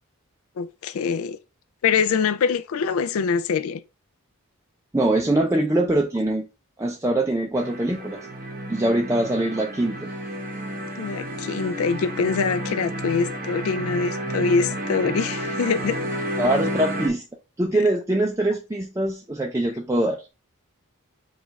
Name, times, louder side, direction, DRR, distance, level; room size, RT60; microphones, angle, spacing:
voice 1, 0.6-1.4 1.8-3.8 11.0-16.0, left 5 dB, 75° left, 0.4 m, -24 dB
voice 2, 4.9-6.5 6.8-8.2 8.7-10.1 15.1-15.2 16.4-17.2 17.6-20.3, right 1 dB, 15° right, 0.4 m, -23 dB
sound 1, 7.5-17.1, equal, 40° right, 0.8 m, -31 dB
5.1 x 2.4 x 4.0 m
head